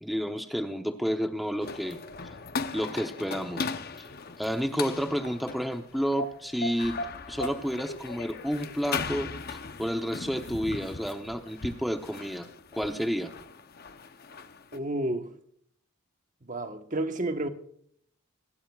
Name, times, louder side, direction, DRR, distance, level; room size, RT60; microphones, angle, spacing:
voice 1, 0.0-2.0 2.7-3.7 4.0-4.1 4.4-7.0 7.3-13.3, equal, ahead, 0.8 m, -30 dB
sound 1, 1.6-14.8, left 4 dB, 45° left, 0.8 m, -38 dB
voice 2, 14.7-15.3 16.4-17.5, right 1 dB, 35° right, 1.2 m, -30 dB
25.0 x 12.0 x 2.4 m
head